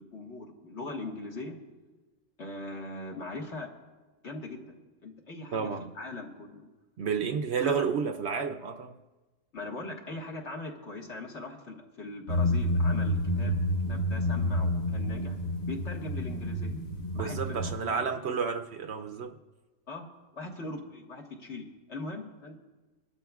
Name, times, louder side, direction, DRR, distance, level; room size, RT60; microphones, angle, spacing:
voice 1, 0.0-1.6 2.4-3.7 4.2-6.7 7.6-7.9 9.5-13.6 13.9-15.4 15.6-16.8 17.1-18.0 19.9-20.1 20.3-22.6, left 2 dB, 60° left, 0 dB, 1.8 m, -40 dB
voice 2, 5.5-5.9 7.0-9.0 17.1-19.3, right 6 dB, 65° right, 6 dB, 0.8 m, -31 dB
sound 1, 12.3-17.7, left 1 dB, 35° left, 0.9 m, -29 dB
24.0 x 12.5 x 2.4 m, 1.2 s
omnidirectional pair, 1.4 m